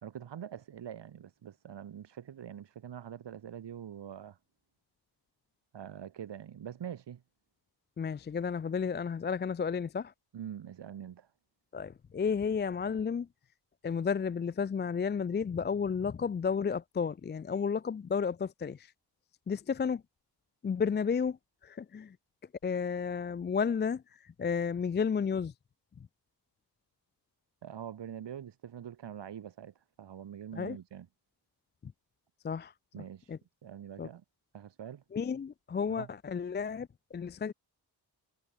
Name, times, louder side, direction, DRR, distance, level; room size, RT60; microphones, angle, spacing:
voice 1, 0.0-4.4 5.7-7.2 10.3-11.3 27.6-31.1 32.9-34.2 34.5-35.0 35.9-36.1, right 9 dB, 85° right, 2.7 m, -44 dB
voice 2, 8.0-10.1 11.7-13.3 13.8-18.9 19.5-20.0 20.6-21.4 21.6-22.2 22.6-25.5 30.5-30.8 31.8-31.9 32.4-32.7 33.3-33.4 34.0-34.1 35.1-37.5, left 6 dB, 25° left, 0.4 m, -32 dB
wide cardioid pair, 135°, 41 cm